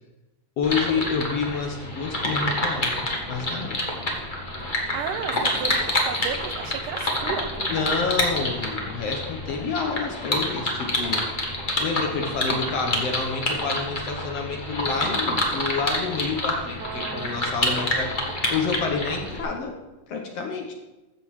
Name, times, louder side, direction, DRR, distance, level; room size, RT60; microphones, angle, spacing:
voice 1, 0.6-3.0 3.3-3.8 7.7-11.3 11.8-18.1 18.5-19.8 20.1-20.7, left 5 dB, 60° left, 2 dB, 1.9 m, -28 dB
sound 1, 0.6-19.4, left 1 dB, 30° left, 0.9 m, -28 dB
voice 2, 4.9-8.0 16.8-17.4, right 7 dB, 85° right, 8 dB, 2.5 m, -34 dB
14.5 x 5.4 x 6.3 m, 1.1 s
omnidirectional pair, 3.6 m